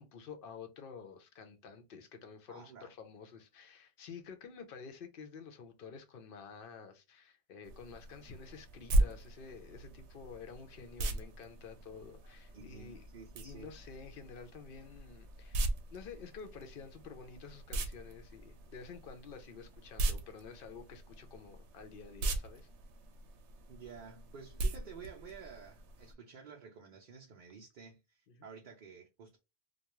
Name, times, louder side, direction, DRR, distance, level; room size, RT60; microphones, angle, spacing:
voice 1, 0.0-13.0 13.4-22.7 28.3-28.5, left 5 dB, 60° left, 0.7 m, -50 dB
voice 2, 2.5-2.9 12.5-13.7 23.7-29.4, right 6 dB, 55° right, 0.6 m, -52 dB
sound 1, 7.6-26.1, right 2 dB, 85° right, 0.9 m, -39 dB
2.3 x 2.2 x 2.9 m
omnidirectional pair, 1.1 m